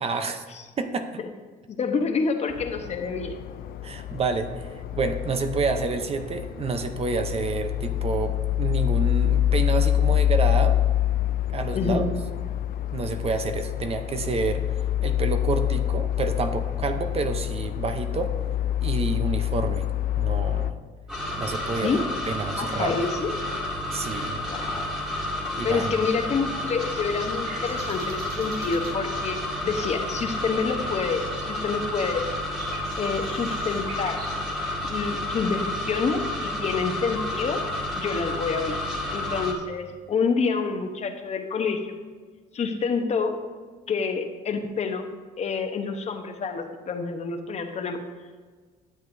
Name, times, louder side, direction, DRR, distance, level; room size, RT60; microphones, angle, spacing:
voice 1, 0.0-0.4 0.8-1.2 3.8-10.8 11.5-12.1 12.9-14.6 15.0-18.4 18.8-19.9 20.2-20.8 21.4-23.0 23.9-24.4 25.6-26.0, right 4 dB, 35° right, 8 dB, 0.7 m, -29 dB
voice 2, 1.7-3.4 11.7-12.1 21.6-22.1 22.6-23.3 24.5-24.9 25.6-32.2 33.0-34.2 34.9-37.6 38.0-38.8 39.1-41.9 42.5-43.4 43.9-45.1 45.4-48.0, left 5 dB, 40° left, 6 dB, 0.9 m, -28 dB
sound 1, 2.5-20.7, left 12 dB, 60° left, 0.4 m, -26 dB
sound 2, 21.1-39.5, left 1 dB, 5° right, 1.8 m, -30 dB
sound 3, 24.9-25.2 26.4-29.0 30.6-30.7 31.0-31.3 31.6-34.4, right 4 dB, 65° right, 1.5 m, -45 dB
12.5 x 7.6 x 2.7 m, 1.5 s
cardioid pair, 110°, 17 cm